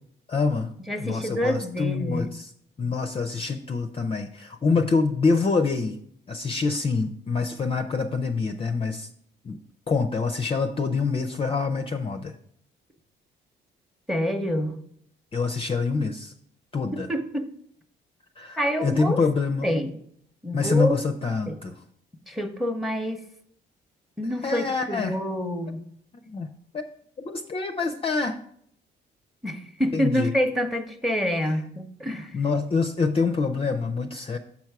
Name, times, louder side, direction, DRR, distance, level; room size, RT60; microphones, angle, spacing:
voice 1, 0.3-0.7 1.0-2.5 2.8-6.0 6.3-9.1 9.4-9.6 9.9-12.3 15.3-16.3 16.7-17.1 18.4-19.7 20.5-21.8 24.4-25.2 26.3-26.8 27.2-28.4 29.9-30.3 32.3-34.4, left 4 dB, 30° left, 7 dB, 0.4 m, -26 dB
voice 2, 0.9-2.3 14.1-14.8 17.1-17.5 18.6-19.2 19.6-19.9 20.4-21.0 21.5-21.6 22.3-23.2 24.2-25.8 29.4-32.4, equal, ahead, 7 dB, 0.8 m, -27 dB
7.1 x 4.5 x 4.6 m, 0.67 s
cardioid pair, 90°, 20 cm